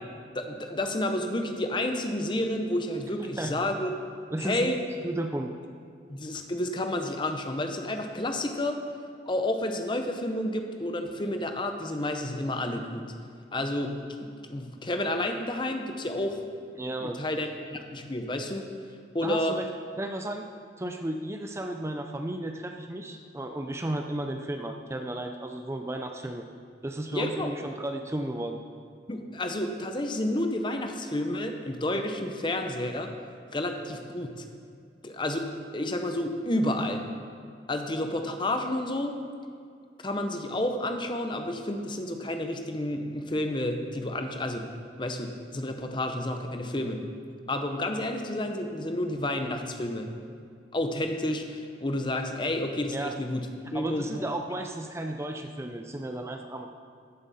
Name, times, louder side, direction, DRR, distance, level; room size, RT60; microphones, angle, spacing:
voice 1, 0.3-3.9 4.4-4.8 6.1-8.8 9.3-13.1 13.5-16.4 17.0-18.6 19.1-19.6 27.1-27.5 29.1-33.1 33.5-34.4 35.0-35.5 35.7-37.0 37.7-39.1 40.0-44.7 45.0-47.0 47.5-50.1 50.7-53.5 53.7-54.2, left 1 dB, 25° left, 5 dB, 0.8 m, -30 dB
voice 2, 4.3-4.7 5.0-5.5 16.8-17.2 19.2-19.6 20.0-20.5 20.8-26.4 26.8-28.6 52.9-53.1 53.7-56.7, right 1 dB, 15° right, 4 dB, 0.4 m, -33 dB
14.5 x 7.4 x 4.2 m, 2.3 s
head